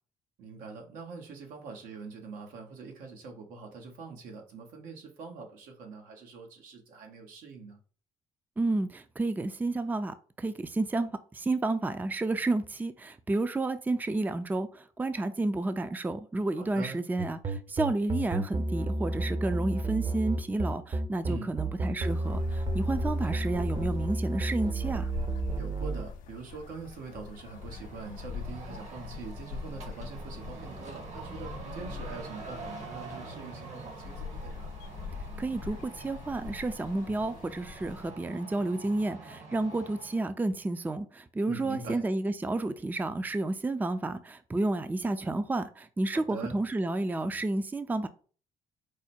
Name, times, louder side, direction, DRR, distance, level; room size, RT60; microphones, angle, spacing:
voice 1, 0.4-7.8 16.5-17.0 21.2-21.6 25.6-34.7 41.4-42.1 46.1-46.6, right 4 dB, 85° right, 1.1 m, -44 dB
voice 2, 8.6-25.1 35.4-48.1, right 2 dB, 10° right, 0.4 m, -31 dB
sound 1, 17.2-26.1, right 2 dB, 35° right, 0.7 m, -31 dB
sound 2, 22.0-38.1, left 5 dB, 75° left, 0.5 m, -42 dB
sound 3, 27.5-40.3, right 3 dB, 55° right, 1.2 m, -45 dB
4.8 x 2.2 x 4.2 m
cardioid pair, 80°, 14 cm